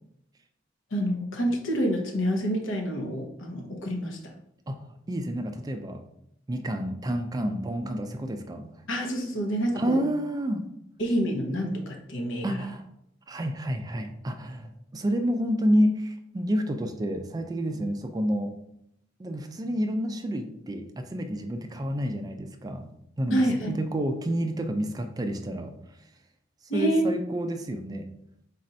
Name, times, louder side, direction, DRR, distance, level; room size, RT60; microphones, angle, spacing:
voice 1, 0.9-4.3 8.9-10.0 11.0-12.6 23.3-23.8 26.7-27.0, equal, 80° left, 2 dB, 0.9 m, -28 dB
voice 2, 5.1-6.0 6.5-8.7 9.7-10.7 12.4-12.8 13.3-18.5 19.2-25.7 26.7-28.1, equal, 20° right, 6 dB, 0.3 m, -29 dB
4.1 x 2.5 x 4.2 m, 0.77 s
head